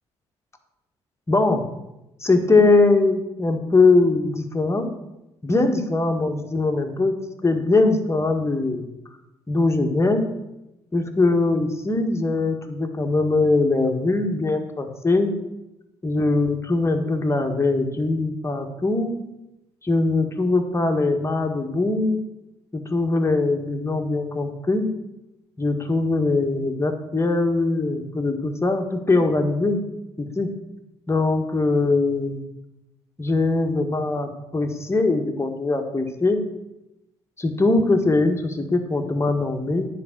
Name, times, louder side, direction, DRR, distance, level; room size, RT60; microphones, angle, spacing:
voice 1, 1.3-1.6 2.2-4.9 5.4-7.2 7.4-8.8 9.5-10.3 10.9-15.3 16.0-19.2 19.8-22.2 22.7-24.8 25.6-29.8 30.2-30.5 31.1-32.5 33.2-36.4 37.4-39.9, left 3 dB, 20° left, 4 dB, 1.6 m, -21 dB
9.6 x 4.9 x 7.4 m, 0.93 s
supercardioid pair, 60°, 12 cm